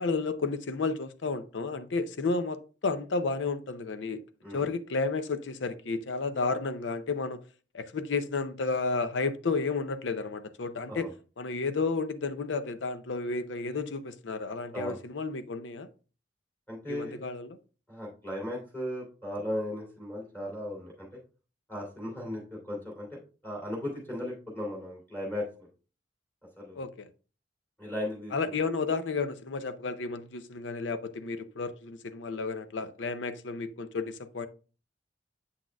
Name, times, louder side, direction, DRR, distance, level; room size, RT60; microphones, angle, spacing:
voice 1, 0.0-4.2 4.5-7.4 7.7-11.1 11.4-15.9 16.9-17.6 26.8-27.1 28.3-34.5, left 4 dB, 80° left, 0.6 m, -32 dB
voice 2, 16.7-17.2 17.9-21.2 21.7-23.2 23.4-25.5 26.6-26.8 27.8-28.5, left 1 dB, 10° left, 2.8 m, -36 dB
7.6 x 6.2 x 2.3 m
head